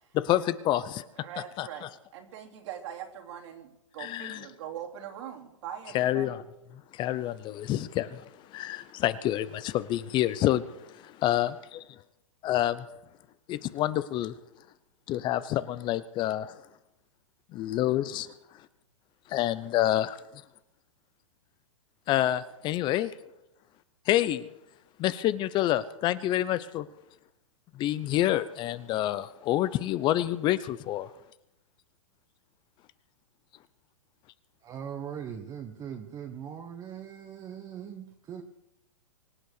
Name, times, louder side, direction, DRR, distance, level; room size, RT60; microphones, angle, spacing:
voice 1, 0.3-0.8 1.6-1.7 4.0-4.4 5.9-6.4 7.0-8.1 8.5-9.5 9.7-10.6 11.2-11.5 12.4-12.7 13.5-14.3 15.1-16.4 17.6-18.3 19.3-20.1 22.1-23.1 24.1-24.4 25.0-26.8 27.8-31.1, left 13 dB, 25° left, 16 dB, 0.7 m, -27 dB
voice 2, 1.2-1.9 2.1-6.4, right 9 dB, 60° right, 1 dB, 3.4 m, -42 dB
voice 3, 34.6-38.4, right 8 dB, 20° right, 4 dB, 1.3 m, -40 dB
24.5 x 8.1 x 6.6 m, 0.89 s
hypercardioid pair, 130°, 17 cm